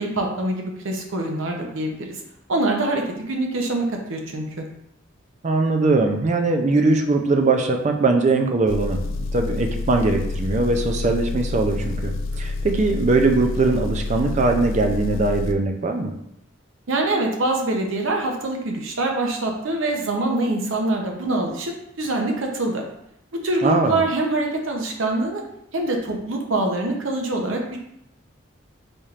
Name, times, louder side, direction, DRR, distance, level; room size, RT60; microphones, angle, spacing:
voice 1, 0.0-2.2 2.5-4.6 16.9-22.8 23.3-25.4 25.7-27.8, right 2 dB, 75° right, 2 dB, 0.7 m, -24 dB
voice 2, 5.4-12.1 12.4-16.1 23.6-24.0, right 3 dB, 35° right, 4 dB, 0.4 m, -21 dB
Engine, 8.7-15.6, left 3 dB, 75° left, 0.3 m, -28 dB
4.2 x 3.2 x 2.4 m, 0.78 s
head